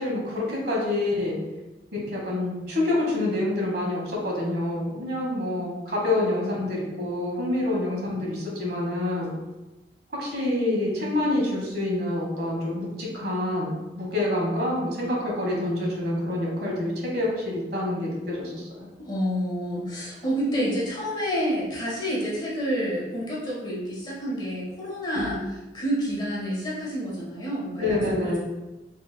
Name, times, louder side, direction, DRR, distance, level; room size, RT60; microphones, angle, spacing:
voice 1, 0.0-1.4 1.9-9.3 10.1-18.7 25.1-25.3 27.8-28.4, left 1 dB, 65° right, -2 dB, 1.3 m, -27 dB
voice 2, 19.0-25.4 25.7-28.0, equal, 25° left, -6 dB, 1.3 m, -28 dB
4.4 x 4.3 x 2.2 m, 1.1 s
head